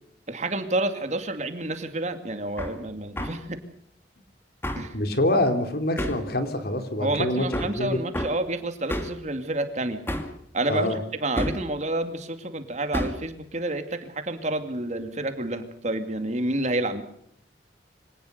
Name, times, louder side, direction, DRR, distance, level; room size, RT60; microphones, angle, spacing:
voice 1, 0.3-3.6 4.7-5.0 7.0-10.0 10.5-17.0, right 2 dB, 40° right, 8 dB, 2.4 m, -29 dB
Hammer, 2.6-2.8 3.2-3.4 4.6-4.9 6.0-6.3 7.5-7.8 8.1-8.4 8.9-9.2 10.1-10.4 11.4-11.7 12.9-13.3, equal, 15° left, 2.5 m, -29 dB
voice 2, 4.9-7.5 7.8-8.0 10.7-11.0, left 1 dB, 60° left, 7 dB, 3.2 m, -25 dB
25.0 x 18.5 x 6.7 m, 0.68 s
head